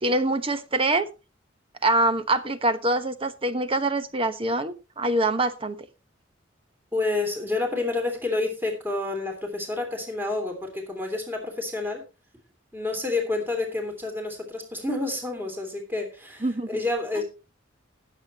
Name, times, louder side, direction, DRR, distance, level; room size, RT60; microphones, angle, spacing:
voice 1, 0.0-1.1 1.8-5.9 16.4-16.8, right 2 dB, 30° right, 1.0 m, -24 dB
voice 2, 6.9-12.0 12.7-17.2, left 2 dB, 10° right, 3.3 m, -29 dB
20.0 x 7.7 x 2.9 m
head